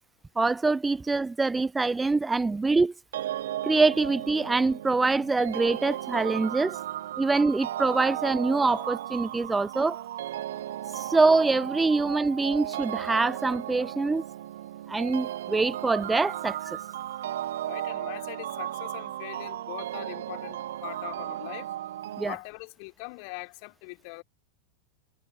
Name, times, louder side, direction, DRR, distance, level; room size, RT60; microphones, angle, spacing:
voice 1, 0.4-2.9 3.6-6.8 7.2-10.0 11.0-14.2 14.9-16.8 22.2-22.3, right 3 dB, 10° right, 0.4 m, -24 dB
sound 1, 3.1-22.3, right 12 dB, 60° right, 1.1 m, -35 dB
voice 2, 17.6-21.7 22.2-24.2, left 37 dB, 45° left, 3.7 m, -42 dB
figure-of-eight pair, 90°, 0 cm